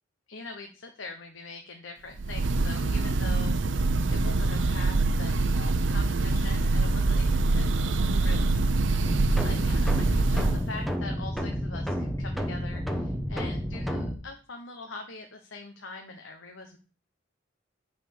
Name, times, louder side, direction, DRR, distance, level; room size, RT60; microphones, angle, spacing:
voice 1, 0.3-16.8, left 3 dB, 80° left, 4 dB, 1.0 m, -43 dB
Breathing / Bird, 2.2-10.7, right 3 dB, 75° right, 0.7 m, -25 dB
sound 1, 9.1-14.1, equal, ahead, 1.0 m, -31 dB
9.4 x 4.3 x 6.9 m, 0.39 s
head